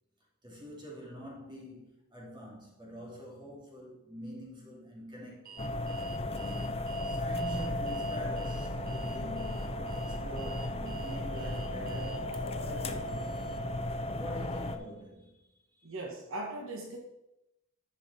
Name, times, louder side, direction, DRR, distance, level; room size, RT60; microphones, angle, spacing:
voice 1, 0.4-5.6 7.0-13.3 14.1-15.4 15.7-15.9, equal, 20° right, -3 dB, 2.6 m, -45 dB
Alarm, 5.5-12.4, right 5 dB, 45° right, 0.8 m, -50 dB
sound 1, 5.6-14.8, left 1 dB, 30° left, 0.6 m, -35 dB
Wind instrument woodwind instrument, 7.6-13.1, left 6 dB, 5° right, 2.9 m, -57 dB
voice 2, 15.8-17.0, right 2 dB, 70° right, 1 dB, 1.2 m, -39 dB
10.5 x 5.7 x 4.1 m, 0.89 s
head